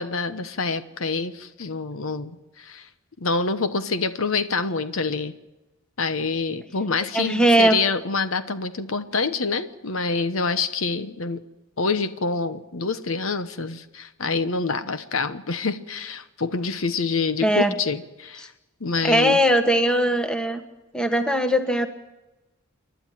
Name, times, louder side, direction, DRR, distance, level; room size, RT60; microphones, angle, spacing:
voice 1, 0.0-2.9 3.2-5.3 6.0-11.4 11.8-18.5 18.8-19.4, left 4 dB, 70° left, 11 dB, 1.1 m, -26 dB
voice 2, 7.1-7.8 17.4-17.7 19.0-20.6 20.9-21.9, right 1 dB, 5° left, 7 dB, 1.4 m, -20 dB
28.5 x 11.5 x 9.1 m, 1.0 s
head